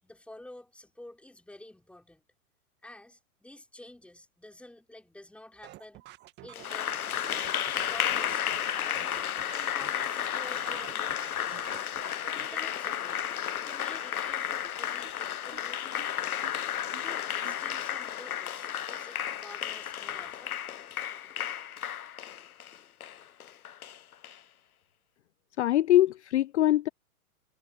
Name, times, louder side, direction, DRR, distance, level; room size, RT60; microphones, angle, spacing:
voice 1, 0.0-2.2 2.8-6.1 6.4-7.2 7.7-9.2 9.5-11.8 12.3-13.3 13.6-15.9 16.3-16.6 16.9-20.5, left 1 dB, 5° left, 5.6 m, -50 dB
sound 1, 5.6-12.5, right 17 dB, 25° right, 1.5 m, -49 dB
Applause, 6.5-24.4, left 10 dB, 75° left, 1.0 m, -33 dB
sound 2, 7.4-12.6 12.9-13.0 13.2-13.3 13.5-13.6 13.9-14.0 14.3-14.4 14.6-14.7 15.0-15.1 15.5-15.6 16.0-16.1 16.4-16.5 16.9-17.0 17.4-17.6, right 11 dB, 60° right, 3.1 m, -50 dB
voice 2, 25.6-26.9, left 14 dB, 50° left, 0.7 m, -23 dB
hypercardioid pair, 125°, 44 cm